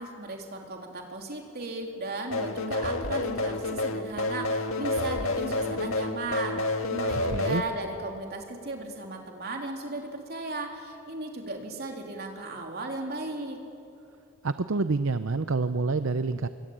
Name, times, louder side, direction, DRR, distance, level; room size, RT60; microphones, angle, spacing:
voice 1, 0.0-13.6, right 2 dB, 50° right, 2 dB, 3.4 m, -36 dB
sound 1, 2.3-7.6, left 2 dB, 75° left, 1.8 m, -29 dB
voice 2, 7.3-7.6 14.4-16.5, right 3 dB, 65° right, 11 dB, 0.7 m, -27 dB
26.0 x 23.5 x 8.8 m, 2.6 s
head